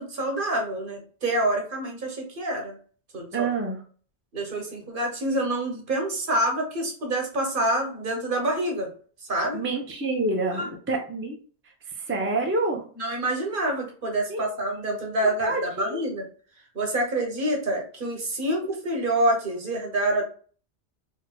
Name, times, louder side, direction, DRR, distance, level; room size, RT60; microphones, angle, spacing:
voice 1, 0.0-2.8 3.1-3.5 4.3-8.9 9.3-9.6 10.5-10.7 13.0-16.2 16.7-20.2, right 1 dB, 50° right, 1 dB, 1.1 m, -27 dB
voice 2, 3.3-3.8 9.5-11.4 11.9-12.8 14.3-14.6 15.2-16.0, right 3 dB, 15° right, 1 dB, 0.4 m, -28 dB
4.3 x 2.7 x 2.2 m, 0.42 s
omnidirectional pair, 1.2 m